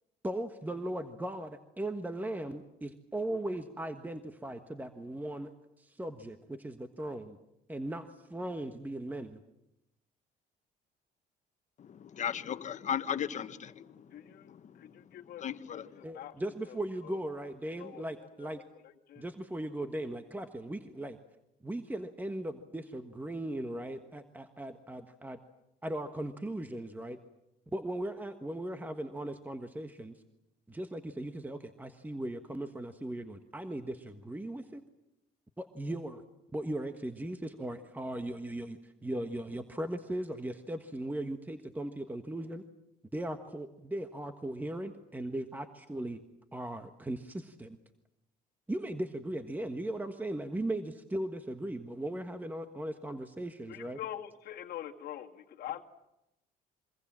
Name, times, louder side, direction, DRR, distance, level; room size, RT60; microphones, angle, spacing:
voice 1, 0.2-5.5 5.8-7.4 7.7-9.4 16.0-18.6 19.2-21.2 21.6-25.4 25.8-27.2 27.7-30.1 30.7-34.8 35.6-36.2 36.5-42.6 43.1-46.2 46.5-47.8 48.7-54.0, right 1 dB, 10° right, 1.4 m, -38 dB
voice 2, 11.8-16.0, left 8 dB, 45° left, 1.4 m, -38 dB
voice 3, 14.1-14.5 14.8-15.4 15.7-16.3 16.6-16.8 17.0-17.2 17.8-18.5 19.1-19.2 53.7-55.8, left 11 dB, 65° left, 1.9 m, -44 dB
26.5 x 24.5 x 7.5 m
cardioid pair, 110°, 17 cm